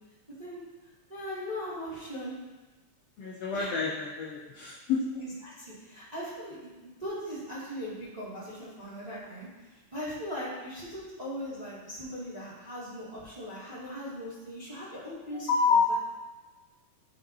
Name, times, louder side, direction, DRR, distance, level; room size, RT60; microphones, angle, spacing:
voice 1, 1.1-2.3 3.5-3.7 4.9-6.6 6.8-15.9, equal, 15° right, -9 dB, 1.8 m, -39 dB
voice 2, 3.2-5.0 15.3-15.9, left 5 dB, 70° left, -4 dB, 1.6 m, -27 dB
12.5 x 5.1 x 2.8 m, 1.2 s
omnidirectional pair, 3.8 m